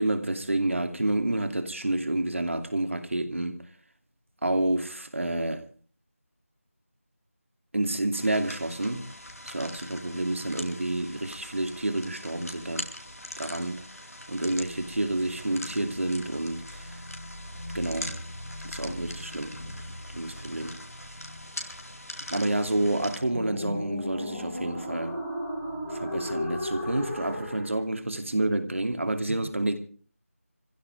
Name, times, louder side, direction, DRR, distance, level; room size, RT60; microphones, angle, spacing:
voice 1, 0.0-3.6 4.4-5.6 7.7-9.1 9.4-12.9 13.4-13.8 14.3-17.0 17.7-18.2 18.6-19.6 20.1-20.8 22.3-25.2 25.9-29.8, right 1 dB, 60° right, 2.7 m, -29 dB
sound 1, 8.1-23.2, left 1 dB, 90° left, 4.3 m, -42 dB
sound 2, 14.6-27.8, left 1 dB, 10° left, 7.4 m, -38 dB
25.5 x 16.0 x 3.4 m
figure-of-eight pair, 175°, 8 cm